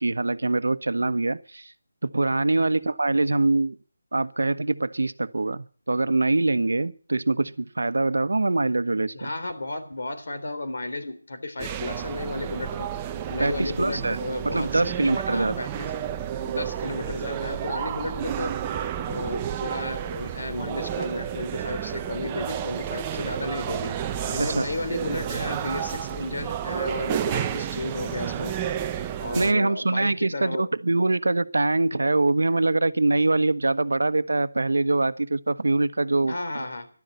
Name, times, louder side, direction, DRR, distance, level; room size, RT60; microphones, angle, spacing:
voice 1, 0.0-1.7 2.0-3.8 4.1-9.3 13.4-14.2 14.4-15.6 24.4-24.7 29.3-36.6, right 2 dB, 85° right, 1.1 m, -24 dB
voice 2, 9.1-12.9 13.3-14.9 15.3-15.9 16.4-18.6 19.1-24.0 24.3-28.6 29.2-30.7 36.3-36.9, left 2 dB, 65° left, 3.7 m, -33 dB
sound 1, 11.6-29.5, right 9 dB, 15° right, 0.7 m, -31 dB
14.0 x 12.0 x 8.0 m
figure-of-eight pair, 170°, 0 cm